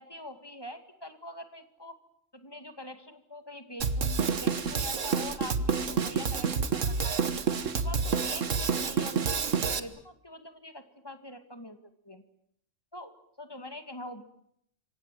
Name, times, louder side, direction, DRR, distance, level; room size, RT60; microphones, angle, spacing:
voice 1, 0.0-2.0 2.3-7.2 7.7-11.8 12.0-12.2 12.9-14.2, left 1 dB, 20° left, 8 dB, 2.3 m, -44 dB
Drum kit, 3.8-9.8, right 5 dB, 75° right, 1.8 m, -28 dB
28.0 x 24.5 x 7.7 m, 0.73 s
omnidirectional pair, 1.3 m